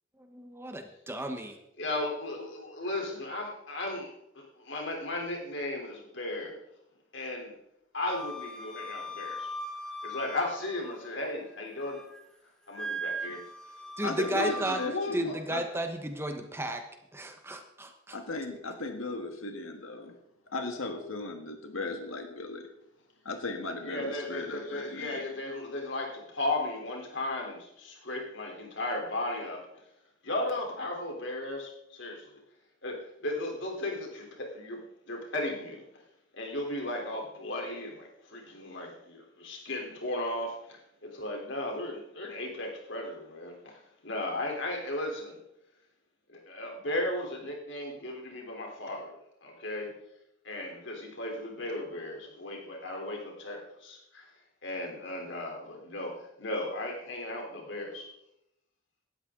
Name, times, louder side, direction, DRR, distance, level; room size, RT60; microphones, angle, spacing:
voice 1, 0.2-1.6 14.0-14.8 15.1-16.9 17.1-18.2, right 1 dB, 10° right, 5 dB, 1.1 m, -34 dB
voice 2, 1.8-6.6 7.1-7.5 7.9-9.5 10.0-12.0 12.7-13.4 14.2-15.3 23.8-29.7 30.2-32.4 32.8-34.8 35.1-35.8 36.3-43.8 44.0-45.4 46.3-49.1 49.4-49.9 50.4-54.3 54.6-58.1, left 1 dB, 65° left, 1 dB, 3.7 m, -35 dB
Wind instrument woodwind instrument, 8.1-11.1 11.5-12.2 12.7-14.9, right 1 dB, 5° left, 1.4 m, -40 dB
voice 3, 14.0-15.6 18.1-20.1 20.5-22.7 23.2-25.2, left 2 dB, 85° left, 5 dB, 1.7 m, -37 dB
18.0 x 12.5 x 3.8 m, 0.82 s
head